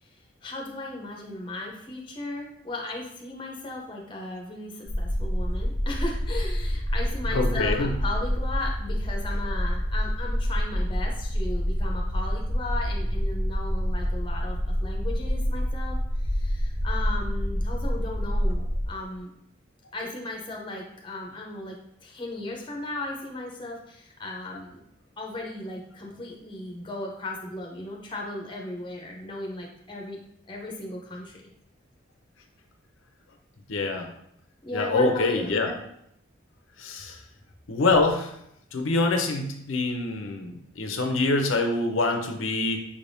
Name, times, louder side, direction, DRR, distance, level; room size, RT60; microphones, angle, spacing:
voice 1, 0.4-19.3 19.9-24.8 25.2-30.2 30.5-31.5 34.6-35.6, left 2 dB, 25° left, 0 dB, 0.7 m, -36 dB
sound 1, 4.9-18.9, equal, 80° right, 0.8 m, -27 dB
voice 2, 7.3-7.9 33.7-34.1 34.7-35.8 36.8-37.2 37.7-38.3 38.7-42.8, left 3 dB, 80° left, 4 dB, 0.6 m, -25 dB
5.2 x 3.4 x 2.7 m, 0.73 s
head